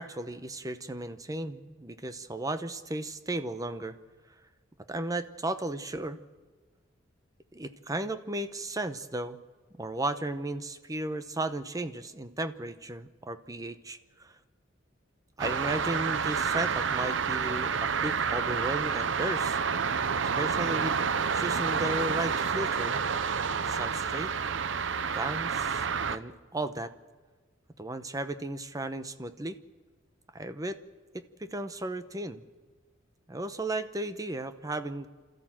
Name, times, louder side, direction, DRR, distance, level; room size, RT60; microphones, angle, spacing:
voice 1, 0.0-4.0 4.9-6.2 7.5-9.4 9.8-14.3 15.4-19.6 20.4-21.0 21.3-23.0 23.7-24.3 25.1-25.8 26.1-26.9 27.8-29.6 30.3-30.8 31.1-32.4 33.3-35.1, right 1 dB, 20° right, 10 dB, 0.9 m, -35 dB
sound 1, 15.4-26.2, right 6 dB, 65° right, 0.7 m, -29 dB
28.5 x 13.5 x 7.5 m, 1.4 s
head